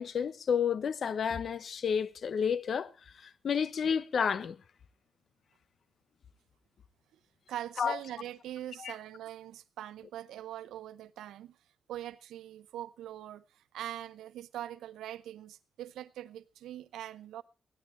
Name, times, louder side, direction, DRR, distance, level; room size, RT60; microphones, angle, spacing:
voice 1, 0.0-2.9 3.2-4.6 7.8-8.0 8.8-8.9, left 7 dB, 65° left, 0.9 m, -30 dB
voice 2, 7.5-11.6 11.9-17.4, right 12 dB, 90° right, 0.7 m, -42 dB
15.0 x 11.5 x 4.5 m
supercardioid pair, 55°, 0 cm